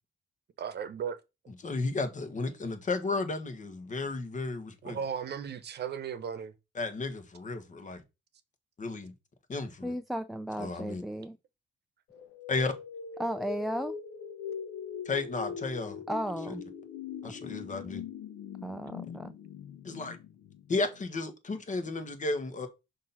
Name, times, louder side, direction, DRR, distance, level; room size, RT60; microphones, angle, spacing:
voice 1, 0.6-1.2 4.8-6.5, right 7 dB, 55° right, 0.9 m, -36 dB
voice 2, 1.6-5.0 6.7-8.0 8.8-9.1 9.5-9.9 10.6-11.0 12.5-12.7 15.0-16.0 17.2-18.0 19.8-20.2 20.7-22.7, left 3 dB, 40° left, 1.4 m, -33 dB
voice 3, 9.8-11.4 13.2-14.0 16.1-16.6 17.2-17.3 18.6-19.3, equal, ahead, 0.4 m, -35 dB
sound 1, 12.1-21.0, left 7 dB, 80° left, 0.8 m, -42 dB
6.1 x 2.8 x 5.5 m
cardioid pair, 90°, 20 cm